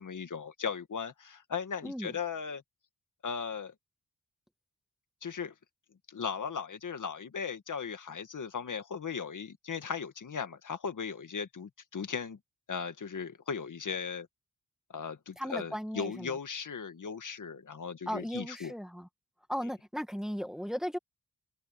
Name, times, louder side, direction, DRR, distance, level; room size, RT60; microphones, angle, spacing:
voice 1, 0.0-2.6 3.2-3.7 5.2-5.5 6.1-12.4 12.7-14.3 14.9-18.7, left 6 dB, 65° left, 2.0 m, -37 dB
voice 2, 15.4-16.4 18.1-19.1 19.5-21.0, equal, ahead, 1.9 m, -36 dB
cardioid pair, 80°, 34 cm